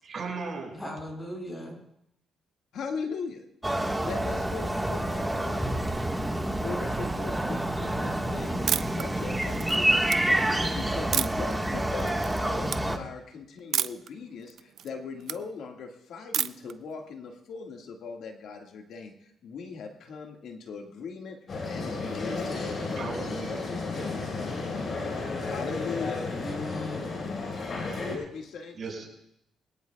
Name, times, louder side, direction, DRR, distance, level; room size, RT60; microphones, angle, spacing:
voice 1, 0.0-0.8 22.9-23.7 28.8-29.1, right 4 dB, 50° right, 0 dB, 5.8 m, -36 dB
voice 2, 0.7-1.7 26.4-27.2, left 1 dB, 20° left, -1 dB, 7.0 m, -37 dB
voice 3, 2.7-3.4 4.0-5.8 6.6-10.4 10.7-19.1 19.4-21.4 21.7-22.9 25.4-26.3 28.1-28.8, left 5 dB, 75° left, 3 dB, 1.8 m, -39 dB
sound 1, 3.6-13.0, right 1 dB, 10° right, 1.5 m, -28 dB
sound 2, 8.7-9.0 9.5-10.2 11.1-11.5 12.0-12.4 12.6-12.8 13.7-14.1 14.5-15.4 16.3-16.7, right 9 dB, 70° right, 0.5 m, -29 dB
sound 3, 21.5-28.2, left 3 dB, 50° left, 4.6 m, -33 dB
24.0 x 17.5 x 2.3 m, 0.77 s
cardioid pair, 90°, 0 cm